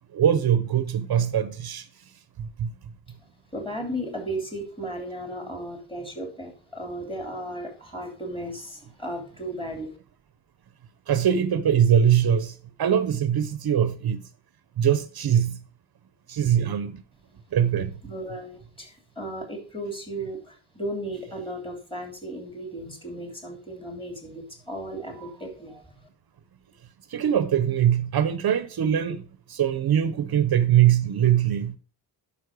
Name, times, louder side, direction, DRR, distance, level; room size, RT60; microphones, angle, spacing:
voice 1, 0.1-1.9 2.4-2.7 11.1-14.2 14.8-15.6 16.3-17.0 17.5-17.9 27.1-29.2 29.5-31.8, right 9 dB, 60° right, 0.7 m, -22 dB
voice 2, 3.3-10.0 18.0-26.1, right 1 dB, 10° left, 2.8 m, -35 dB
11.5 x 5.5 x 4.8 m
wide cardioid pair, 140°, 42 cm